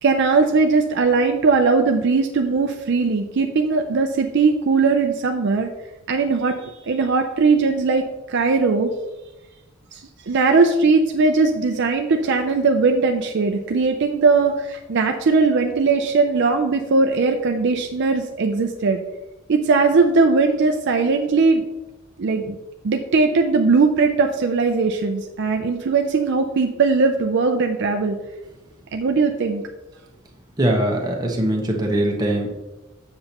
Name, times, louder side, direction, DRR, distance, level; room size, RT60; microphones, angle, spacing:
voice 1, 0.0-5.7 6.1-8.9 9.9-19.0 19.5-21.6 22.2-22.6 22.8-28.2 28.9-29.6, right 4 dB, 55° right, 5 dB, 0.5 m, -19 dB
voice 2, 30.6-32.5, right 1 dB, 20° right, 0 dB, 1.1 m, -21 dB
7.7 x 6.6 x 2.9 m, 1.1 s
head